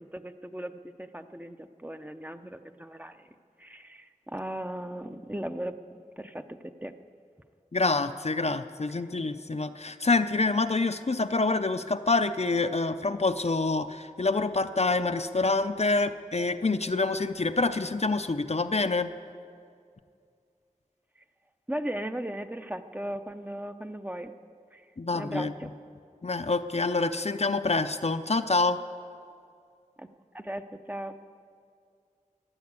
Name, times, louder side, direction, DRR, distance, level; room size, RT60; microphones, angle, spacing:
voice 1, 0.0-3.3 3.6-5.8 6.2-6.9 21.7-24.3 24.7-24.9 25.1-25.7 30.0-30.1 30.3-31.2, right 1 dB, 10° right, 8 dB, 0.7 m, -37 dB
voice 2, 7.7-19.1 25.0-25.5 26.2-28.8, left 3 dB, 50° left, 9 dB, 0.6 m, -27 dB
15.5 x 10.5 x 8.2 m, 2.3 s
wide cardioid pair, 45°, 14 cm